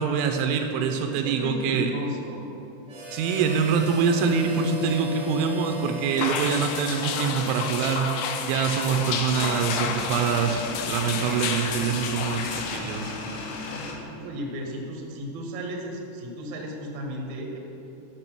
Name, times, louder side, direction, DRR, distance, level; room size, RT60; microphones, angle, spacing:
voice 1, 0.0-1.9 3.1-8.1 8.5-13.1, right 6 dB, 85° right, 5 dB, 2.9 m, -25 dB
voice 2, 1.1-2.5 13.6-17.6, equal, 65° right, 0 dB, 1.9 m, -34 dB
Harmonica, 2.9-8.9, equal, 25° right, 0.9 m, -38 dB
sound 1, 6.2-12.8, left 6 dB, 90° left, 3.4 m, -31 dB
sound 2, 8.9-14.0, left 3 dB, 70° left, 2.6 m, -35 dB
12.0 x 6.1 x 6.0 m, 2.9 s
omnidirectional pair, 5.6 m